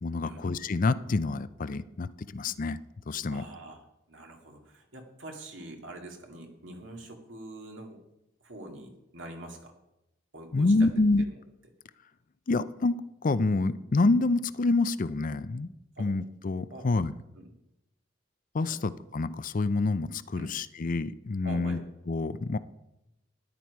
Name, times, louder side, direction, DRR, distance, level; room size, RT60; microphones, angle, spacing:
voice 1, 0.0-2.8 3.1-3.4 10.5-11.3 12.5-15.7 16.0-17.1 18.5-21.8 22.1-22.6, left 3 dB, 45° left, 14 dB, 0.5 m, -27 dB
voice 2, 3.3-8.0 8.4-9.7 10.3-10.9 11.3-11.4 16.0-16.1 16.7-16.9 17.4-17.5 18.6-18.8 20.4-20.5 21.4-21.8, right 1 dB, 75° right, 2 dB, 2.2 m, -45 dB
13.5 x 10.0 x 4.7 m, 0.90 s
head